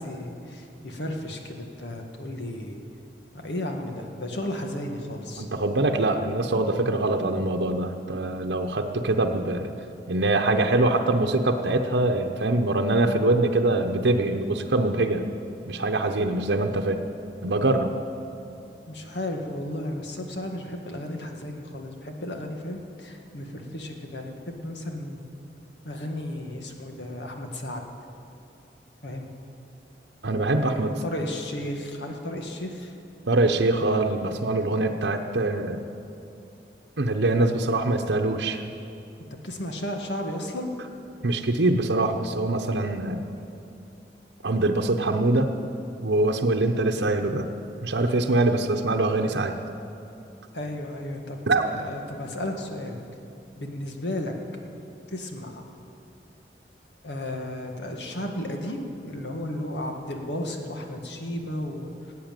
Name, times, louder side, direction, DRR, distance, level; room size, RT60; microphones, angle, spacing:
voice 1, 0.0-2.8 3.4-5.5 18.9-25.2 25.8-27.8 29.0-29.3 30.6-32.9 39.4-40.7 50.5-53.0 53.6-54.3 55.1-55.6 57.0-61.9, left 1 dB, 85° left, 3 dB, 1.8 m, -34 dB
voice 2, 5.4-9.7 10.1-15.2 15.7-17.0 17.4-17.9 30.2-30.9 33.3-35.8 37.0-38.6 41.2-43.2 44.4-45.5 46.0-47.5 47.8-49.5 51.5-51.6, right 2 dB, 85° right, 4 dB, 0.9 m, -23 dB
18.0 x 8.6 x 9.1 m, 2.6 s
head